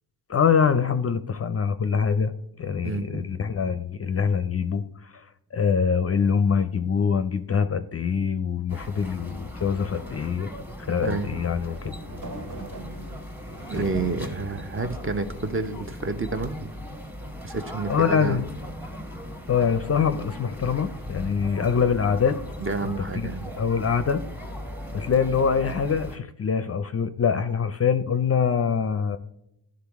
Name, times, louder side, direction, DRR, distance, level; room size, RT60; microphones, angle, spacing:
voice 1, 0.3-2.3 2.6-5.3 5.5-10.5 10.8-11.9 17.9-18.4 19.5-22.4 22.8-23.3 23.6-24.2 24.9-29.2, left 6 dB, 35° left, 11 dB, 0.5 m, -24 dB
voice 2, 2.8-3.3 11.0-11.3 13.7-16.7 17.4-18.4 22.6-23.5, right 3 dB, 30° right, 8 dB, 0.7 m, -29 dB
sound 1, 8.7-26.2, left 1 dB, 5° right, 1.0 m, -38 dB
Recycle plastic blue trash bin pulling dragging edlarez vsnr, 11.2-14.2 14.7-15.6, equal, 45° right, 1.8 m, -40 dB
11.5 x 3.8 x 3.5 m, 0.82 s
cardioid pair, 80°, 43 cm